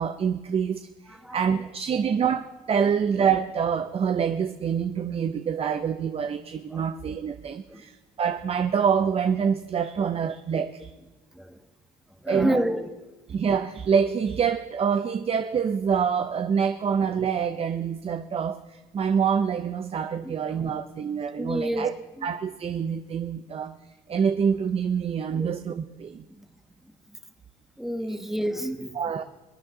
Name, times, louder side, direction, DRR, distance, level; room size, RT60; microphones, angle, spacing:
voice 1, 0.0-10.9 12.3-12.6 13.3-21.9 22.2-23.7 24.1-26.3 28.1-28.2 29.0-29.2, right 7 dB, 35° right, 8 dB, 0.6 m, -26 dB
voice 2, 1.1-1.6 6.7-6.9 7.7-7.9 11.3-11.7 12.2-13.0 20.2-20.8 21.4-21.9 22.2-22.3 25.3-25.5 26.3-26.5 26.8-26.9 27.8-29.1, equal, ahead, 7 dB, 1.2 m, -30 dB
25.0 x 9.4 x 3.8 m, 1.1 s
cardioid pair, 110°, 17 cm